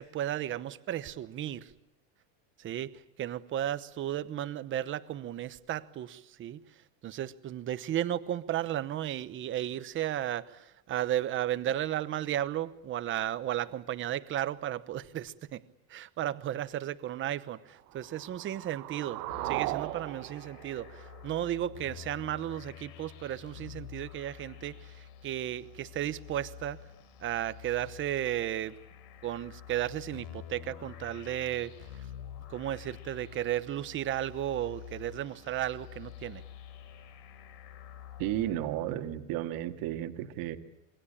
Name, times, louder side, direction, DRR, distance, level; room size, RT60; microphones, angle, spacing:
voice 1, 0.0-1.7 2.6-2.9 3.2-6.6 7.0-15.6 15.9-26.8 27.2-28.7 29.2-32.0 32.5-36.4, right 12 dB, 25° right, 14 dB, 1.0 m, -34 dB
sound 1, 17.9-21.9, right 19 dB, 65° right, 1.1 m, -38 dB
sound 2, 19.3-38.7, left 10 dB, 70° left, 4.0 m, -48 dB
voice 2, 38.2-40.6, right 13 dB, 45° right, 6 dB, 2.1 m, -33 dB
27.0 x 23.0 x 8.7 m, 0.87 s
supercardioid pair, 155°, 49 cm